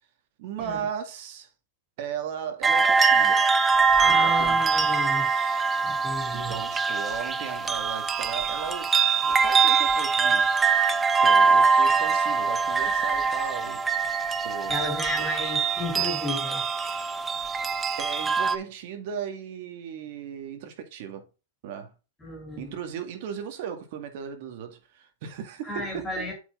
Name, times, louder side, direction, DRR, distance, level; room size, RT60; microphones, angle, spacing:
voice 1, 0.4-1.5 2.0-3.5 4.1-4.6 6.3-8.9 9.2-10.5 11.2-13.8 14.4-14.8 18.0-21.3 21.6-21.9 22.6-26.3, right 8 dB, 50° right, 2.1 m, -36 dB
sound 1, 2.6-18.6, right 5 dB, 10° right, 0.5 m, -23 dB
voice 2, 4.0-5.3 5.8-6.6 14.7-16.6 22.2-22.7 25.6-26.3, left 1 dB, 10° left, 3.7 m, -33 dB
8.0 x 5.5 x 3.9 m
supercardioid pair, 160°, 0 cm